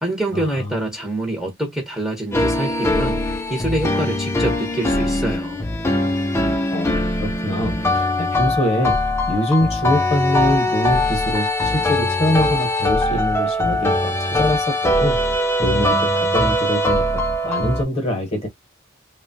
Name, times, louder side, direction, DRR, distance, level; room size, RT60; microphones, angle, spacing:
voice 1, 0.0-3.2 3.5-5.6, right 1 dB, 5° right, 0.7 m, -25 dB
sound 1, 2.3-17.8, left 1 dB, 15° left, 0.4 m, -21 dB
voice 2, 6.7-9.0 9.3-15.2 15.6-18.5, equal, 30° left, 0.9 m, -23 dB
3.0 x 2.1 x 2.6 m
head